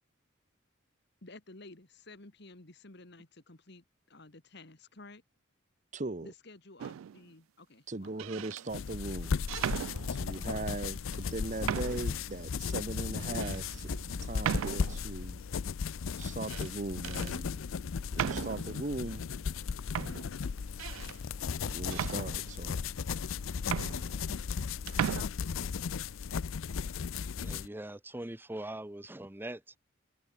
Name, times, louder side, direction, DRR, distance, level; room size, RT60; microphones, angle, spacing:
voice 1, 1.2-5.2 6.2-8.7 10.4-11.2 25.1-26.1, left 2 dB, 55° left, 1.9 m, -53 dB
voice 2, 5.9-6.3 7.9-9.4 10.1-11.0 11.3-13.9 14.2-15.4 16.2-17.6 18.1-19.3 21.6-22.8, right 2 dB, 35° right, 0.9 m, -39 dB
sound 1, 6.8-7.2 8.0-8.6 9.5-10.5 11.1-11.2 11.7-12.2 12.7-12.8 13.4-13.6 14.4-15.1 16.2-16.7 17.0-17.3 18.1-18.8 19.6-19.7 19.9-21.2 21.9-22.8 23.3-23.4 23.6-24.6 24.9-25.2, right 9 dB, 80° right, 0.3 m, -36 dB
sound 2, 8.7-27.7, left 6 dB, 80° left, 0.5 m, -36 dB
Explosion, 9.9-12.2 13.2-15.2, right 1 dB, 60° right, 1.9 m, -51 dB
voice 3, 27.4-29.8, right 1 dB, 10° right, 0.7 m, -42 dB
head